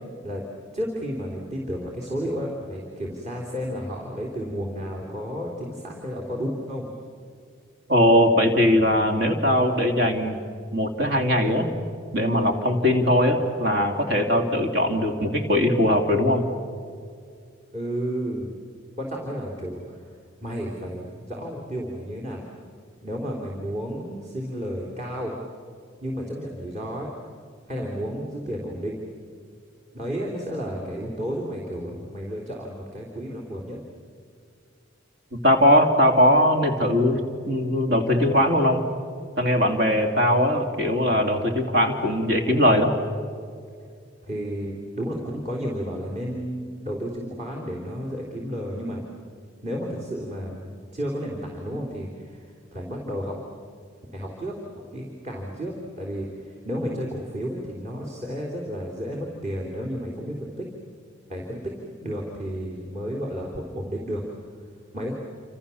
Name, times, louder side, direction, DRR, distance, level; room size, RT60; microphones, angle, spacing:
voice 1, 0.7-6.9 17.7-18.5 19.0-20.1 20.4-22.4 23.0-25.4 26.0-27.1 27.7-29.0 29.9-33.8 44.2-49.0 49.6-53.4 54.1-60.6 61.3-64.2 64.9-65.1, equal, 35° right, -2 dB, 3.4 m, -32 dB
voice 2, 7.9-10.4 10.7-11.7 12.1-16.4 35.4-38.8 39.4-42.9, equal, 55° right, 5 dB, 3.0 m, -20 dB
28.5 x 27.5 x 7.1 m, 2.3 s
head